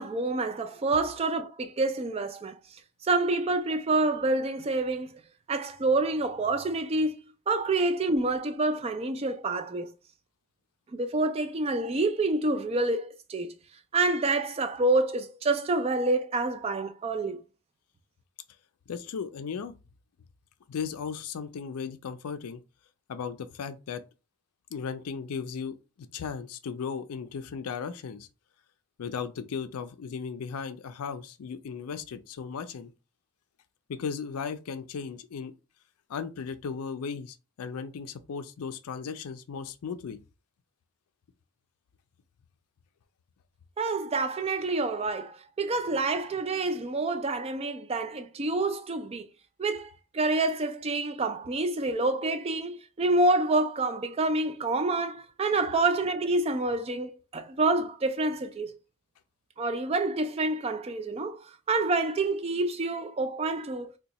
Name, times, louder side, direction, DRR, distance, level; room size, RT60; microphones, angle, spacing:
voice 1, 0.0-2.5 3.0-5.2 5.5-7.2 7.5-9.9 10.9-13.5 13.9-17.4 43.8-49.2 49.6-58.7 59.6-63.9, right 2 dB, 25° right, 0.3 m, -27 dB
voice 2, 18.9-19.7 20.7-22.6 23.1-24.0 24.7-28.3 29.0-32.9 33.9-35.5 36.1-40.2, left 6 dB, 85° left, 0.4 m, -36 dB
2.7 x 2.2 x 4.0 m
head